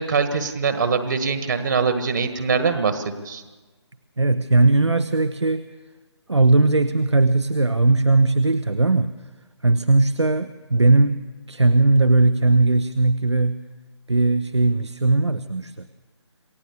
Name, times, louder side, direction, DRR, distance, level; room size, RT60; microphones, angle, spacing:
voice 1, 0.0-3.4, right 5 dB, 45° right, 9 dB, 1.5 m, -23 dB
voice 2, 4.2-5.7 6.3-9.1 9.6-11.2 11.5-13.6 14.1-15.9, right 2 dB, 75° right, 11 dB, 1.0 m, -18 dB
27.5 x 16.0 x 7.0 m, 1.3 s
figure-of-eight pair, 145°, 15 cm